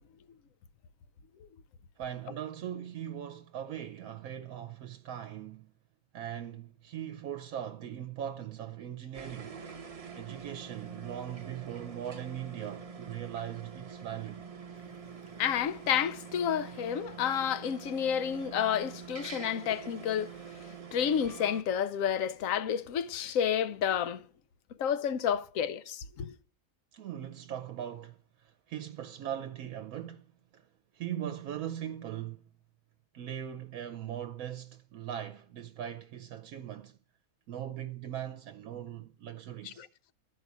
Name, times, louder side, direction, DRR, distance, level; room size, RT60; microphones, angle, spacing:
voice 1, 2.0-5.7 6.1-9.6 10.2-14.5 26.9-30.2 30.5-30.7 30.9-32.5 33.1-37.0 37.5-39.9, right 10 dB, 70° right, 1.1 m, -40 dB
sound 1, 9.1-21.6, right 6 dB, 35° right, 0.7 m, -45 dB
voice 2, 15.4-20.3 20.9-24.2 24.8-26.3, left 8 dB, 70° left, 1.0 m, -30 dB
13.0 x 5.2 x 8.2 m
omnidirectional pair, 1.5 m